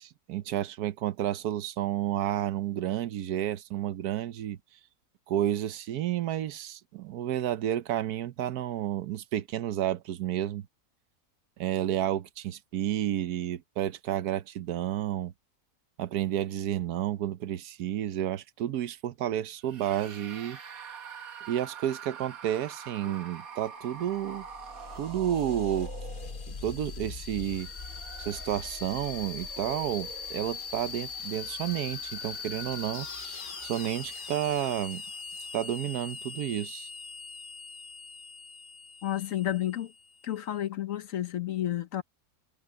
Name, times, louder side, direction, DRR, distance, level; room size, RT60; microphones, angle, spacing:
voice 1, 0.0-4.6 5.3-10.7 11.6-15.3 16.0-20.6 21.5-24.5 25.0-25.9 26.5-27.7 28.2-33.1 33.6-35.0 35.5-36.9, right 12 dB, 85° right, 1.3 m, -31 dB
sound 1, 19.6-26.7 27.4-33.9, right 7 dB, 65° right, 1.8 m, -46 dB
sound 2, 24.1-40.5, left 5 dB, 40° left, 1.0 m, -41 dB
voice 2, 39.0-39.9 40.2-42.0, left 12 dB, 65° left, 1.2 m, -31 dB
omnidirectional pair, 1.6 m